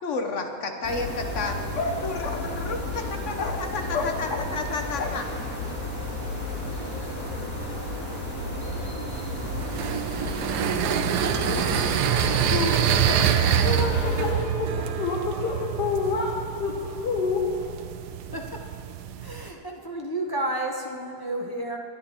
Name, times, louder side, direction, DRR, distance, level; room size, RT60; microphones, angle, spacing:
voice 1, 0.0-5.3, left 3 dB, 55° left, 5 dB, 1.1 m, -30 dB
sound 1, 0.8-14.3, left 1 dB, 15° left, 3.1 m, -32 dB
sound 2, 9.1-19.5, right 9 dB, 80° right, 1.2 m, -26 dB
voice 2, 11.1-12.1 12.5-13.3 13.6-17.7, left 4 dB, 85° left, 0 dB, 1.6 m, -29 dB
voice 3, 19.2-21.8, right 1 dB, 35° left, -1 dB, 0.3 m, -31 dB
20.5 x 9.8 x 2.9 m, 2.5 s
omnidirectional pair, 1.7 m